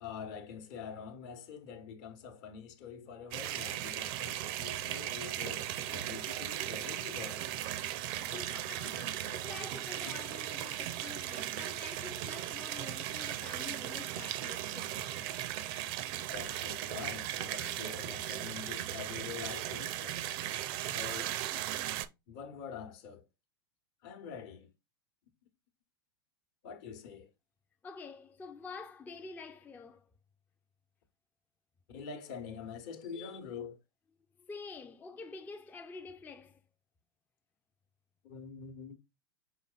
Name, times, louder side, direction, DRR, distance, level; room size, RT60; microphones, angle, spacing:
voice 1, 0.0-7.5 8.3-8.6 10.0-10.4 11.2-11.5 16.3-20.2 20.8-21.4 22.3-23.3 24.0-24.7 26.6-27.3 31.9-33.8 38.2-39.0, left 6 dB, 55° left, 1.0 m, -45 dB
sound 1, 3.3-22.1, right 12 dB, 50° right, 0.5 m, -37 dB
voice 2, 8.2-15.4 27.8-30.1 34.4-36.6, left 4 dB, 10° left, 0.4 m, -48 dB
4.7 x 4.2 x 2.3 m
hypercardioid pair, 95°, 14 cm